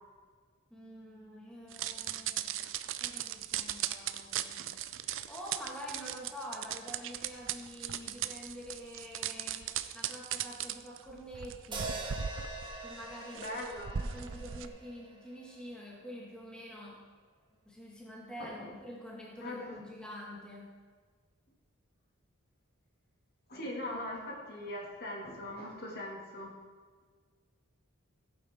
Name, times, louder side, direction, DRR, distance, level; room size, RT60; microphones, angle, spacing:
voice 1, 0.7-4.7 5.0-12.0 12.8-13.6 13.9-17.1 17.6-20.7, equal, 5° left, -4 dB, 1.6 m, -47 dB
sound 1, 1.7-14.7, right 10 dB, 60° right, 0.5 m, -38 dB
sound 2, 11.7-16.0, right 3 dB, 20° right, 1.3 m, -44 dB
voice 2, 13.3-14.0 18.4-18.7 19.4-19.8 23.5-26.5, left 1 dB, 45° left, -2 dB, 2.1 m, -40 dB
15.5 x 8.6 x 3.5 m, 1.5 s
head